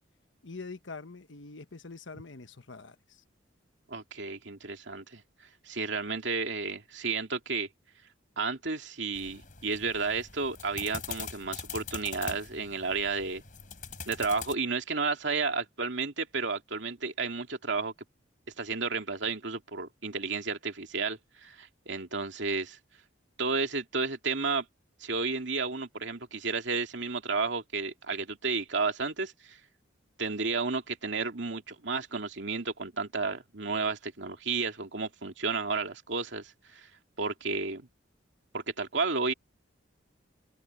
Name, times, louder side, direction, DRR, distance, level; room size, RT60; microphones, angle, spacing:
voice 1, 0.4-3.2, left 3 dB, 70° left, 1.2 m, -44 dB
voice 2, 3.9-5.2 5.6-7.7 8.4-13.4 14.1-17.9 18.6-22.8 23.4-24.7 25.0-29.6 30.2-36.9 37.2-37.9 38.5-39.3, right 4 dB, 65° right, 2.5 m, -32 dB
sound 1, 9.1-14.5, left 6 dB, 45° left, 4.9 m, -43 dB
head